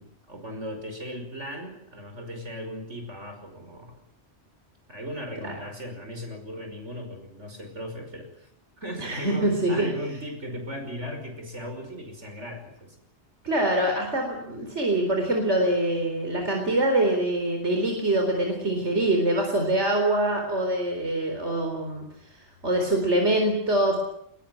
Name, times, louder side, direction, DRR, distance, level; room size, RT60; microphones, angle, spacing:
voice 1, 0.0-4.0 4.9-8.5 8.8-13.0, equal, 90° right, 5 dB, 6.0 m, -37 dB
voice 2, 9.0-9.9 13.4-22.0 22.3-24.0, right 1 dB, 75° right, 3 dB, 4.6 m, -24 dB
22.5 x 21.0 x 9.4 m, 0.71 s
omnidirectional pair, 1.2 m